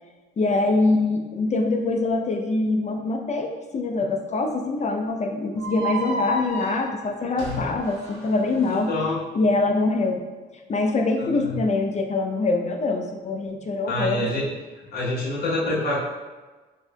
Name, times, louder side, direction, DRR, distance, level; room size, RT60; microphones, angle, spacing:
voice 1, 0.4-3.5 3.7-8.9 9.3-10.2 10.7-14.3, left 3 dB, 35° left, 3 dB, 0.5 m, -24 dB
sound 1, 5.6-8.8, right 1 dB, 80° right, 0.9 m, -32 dB
voice 2, 7.4-7.7 8.7-9.2 11.2-11.6 13.9-14.5 14.9-16.0, left 2 dB, 55° left, -7 dB, 1.1 m, -27 dB
4.5 x 2.7 x 2.2 m, 1.3 s
cardioid pair, 90°, 20 cm